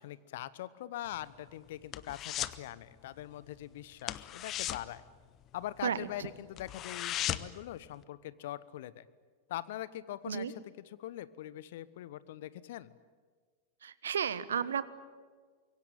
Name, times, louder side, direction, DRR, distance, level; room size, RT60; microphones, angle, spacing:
voice 1, 0.0-5.0 5.5-9.1 9.5-13.0, left 13 dB, 55° left, 18 dB, 1.0 m, -42 dB
sound 1, 1.1-2.7 2.9-3.2 3.5-3.6 4.0-5.9 6.2-6.3 6.6-7.7 8.0-8.1, left 12 dB, 35° left, 1.0 m, -37 dB
voice 2, 5.8-6.3 10.3-10.5 13.8-14.8, right 8 dB, 65° right, 16 dB, 1.2 m, -33 dB
25.0 x 23.0 x 9.0 m, 1.5 s
figure-of-eight pair, 90°, 0 cm